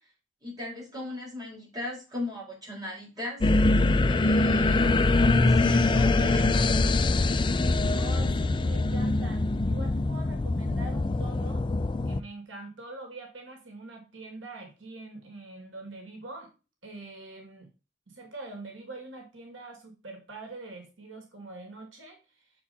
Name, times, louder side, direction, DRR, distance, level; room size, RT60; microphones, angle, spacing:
voice 1, 0.4-3.7 4.0-4.9 5.4-7.1, left 2 dB, 20° right, -5 dB, 4.5 m, -38 dB
sound 1, 3.4-12.2, left 2 dB, 25° left, 0.4 m, -23 dB
voice 2, 7.9-11.6 12.1-16.5 16.8-17.7 18.1-22.5, right 2 dB, 90° right, 2 dB, 2.1 m, -44 dB
7.1 x 4.5 x 4.1 m, 0.31 s
head